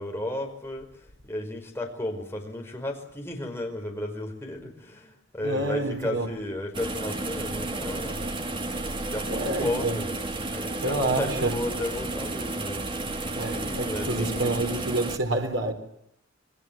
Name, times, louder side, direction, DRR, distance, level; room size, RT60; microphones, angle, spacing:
voice 1, 0.0-8.3 9.1-10.1 10.5-15.0, left 1 dB, 15° left, 5.2 m, -34 dB
voice 2, 5.4-6.3 9.3-10.0 10.8-11.6 13.4-15.7, right 2 dB, 90° right, 4.0 m, -28 dB
sound 1, 6.7-15.2, right 2 dB, 25° right, 2.3 m, -32 dB
28.0 x 21.0 x 7.4 m
head